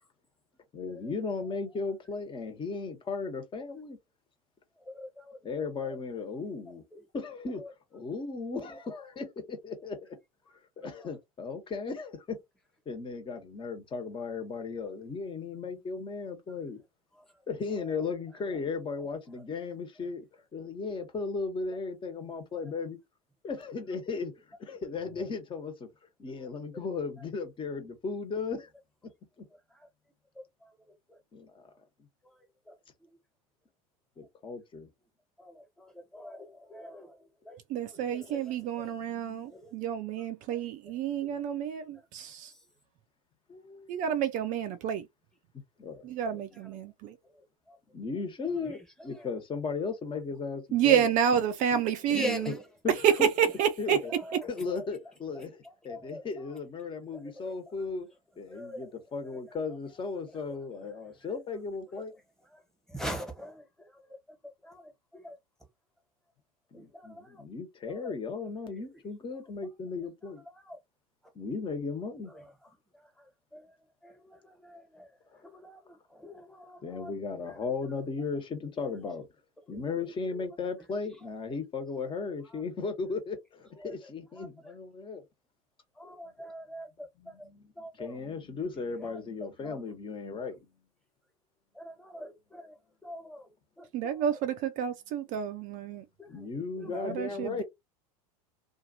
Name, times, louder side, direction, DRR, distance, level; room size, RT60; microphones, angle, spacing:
voice 1, 0.7-4.0 5.4-6.8 7.1-7.6 7.9-10.0 10.8-12.4 12.9-16.8 17.5-20.3 20.5-23.0 23.4-24.3 24.6-25.9 26.2-28.7 31.3-31.7 34.2-34.9 38.8-39.4 43.5-43.9 45.8-46.1 47.9-51.1 52.1-52.5 52.8-53.3 53.8-54.1 54.4-58.1 58.4-62.1 66.7-70.4 71.3-72.3 75.3-75.4 76.8-79.3 79.7-85.2 87.2-90.6 96.3-97.6, left 4 dB, 25° left, 1.2 m, -36 dB
voice 2, 36.1-37.1 37.5-37.6 38.3-38.4 52.1-52.4 55.9-56.2 58.5-58.8 62.9-63.5 64.7-64.8 65.2-65.3 73.5-73.6 74.0-74.1 74.7-74.8 75.6-75.8 76.2-77.1 86.0-86.9 87.8-88.1 91.8-92.6 93.0-93.4, equal, 5° left, 1.4 m, -40 dB
voice 3, 37.7-42.5 43.9-45.1 46.0-47.1 50.7-52.5 53.0-54.0 93.9-96.0 96.9-97.6, right 9 dB, 45° right, 0.5 m, -29 dB
2.7 x 2.5 x 2.7 m
hypercardioid pair, 85°, 19 cm